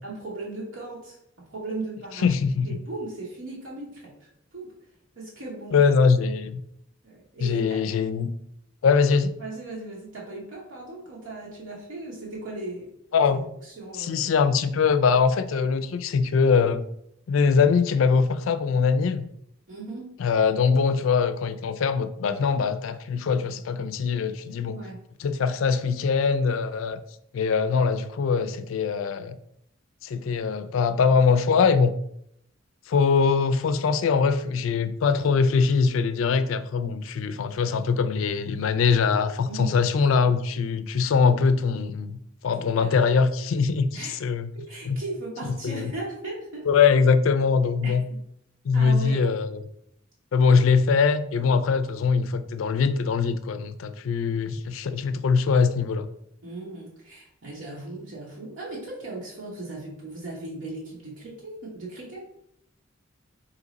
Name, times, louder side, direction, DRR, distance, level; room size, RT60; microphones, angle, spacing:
voice 1, 0.0-1.2 1.5-2.3 2.6-4.7 5.2-5.8 7.0-7.8 9.4-12.9 13.6-14.2 19.7-20.1 24.7-25.0 39.5-39.8 42.5-42.9 43.9-44.1 44.7-46.7 47.8-48.2 48.7-49.3 56.4-62.3, right 2 dB, 80° right, -5 dB, 1.0 m, -37 dB
voice 2, 2.2-2.8 5.7-6.6 7.4-8.3 8.8-9.3 13.1-13.5 14.0-16.8 17.3-19.3 20.2-24.8 25.2-27.0 27.3-29.4 30.0-31.9 32.9-42.2 42.4-44.5 44.9-45.0 45.6-45.9 46.7-48.0 48.6-49.6 50.3-56.1, left 5 dB, 80° left, 10 dB, 0.4 m, -22 dB
3.9 x 2.8 x 4.0 m, 0.75 s
head